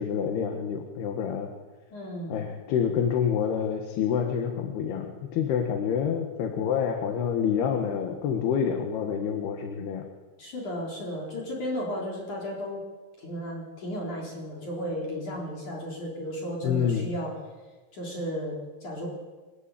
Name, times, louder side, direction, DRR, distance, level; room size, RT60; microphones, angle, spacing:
voice 1, 0.0-1.5 2.3-10.1 16.6-17.1, left 7 dB, 70° left, 3 dB, 3.5 m, -27 dB
voice 2, 1.9-2.3 10.4-12.8 13.2-17.3 17.9-19.1, equal, 45° left, -3 dB, 5.1 m, -34 dB
26.5 x 13.5 x 9.1 m, 1.3 s
omnidirectional pair, 4.9 m